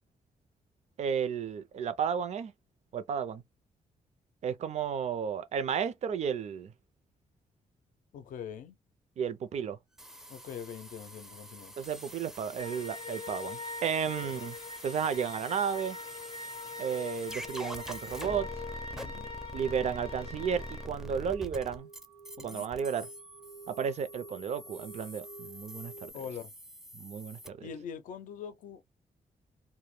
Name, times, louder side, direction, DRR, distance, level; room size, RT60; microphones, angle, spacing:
voice 1, 1.0-2.5 2.9-3.4 4.4-6.7 9.2-9.8 11.8-14.6 14.8-16.0 16.8-18.5 19.5-21.9 22.4-23.1 23.7-26.1 26.9-27.7, right 7 dB, 55° right, 0.5 m, -33 dB
voice 2, 8.1-8.8 10.3-11.7 14.2-14.3 18.9-19.3 22.4-22.7 26.1-26.5 27.6-28.8, left 8 dB, 85° left, 0.5 m, -43 dB
sound 1, 10.0-27.5, equal, 5° right, 0.4 m, -46 dB
sound 2, 12.6-20.9, left 3 dB, 40° left, 0.6 m, -43 dB
sound 3, 18.4-26.1, right 5 dB, 75° right, 0.9 m, -53 dB
2.1 x 2.1 x 3.1 m
cardioid pair, 115°, 13 cm